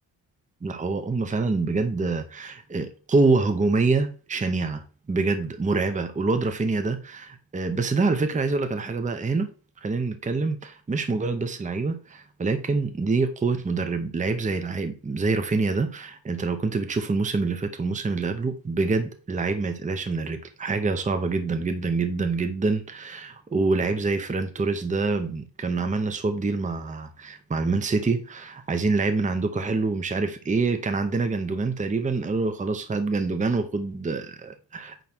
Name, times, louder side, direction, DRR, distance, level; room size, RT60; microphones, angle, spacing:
voice 1, 0.6-4.8 5.1-9.5 9.8-35.0, right 3 dB, 15° right, 0.7 m, -26 dB
9.2 x 3.2 x 6.0 m
wide cardioid pair, 180°, 46 cm